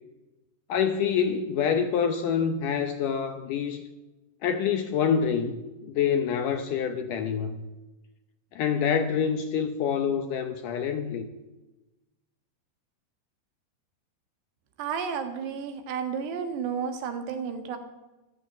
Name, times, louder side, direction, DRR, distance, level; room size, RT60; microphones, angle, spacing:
voice 1, 0.7-3.8 4.4-7.6 8.5-11.3, left 7 dB, 75° left, 7 dB, 2.0 m, -26 dB
voice 2, 14.8-17.8, right 6 dB, 90° right, 6 dB, 3.8 m, -32 dB
15.0 x 13.0 x 7.2 m, 1.1 s
omnidirectional pair, 4.7 m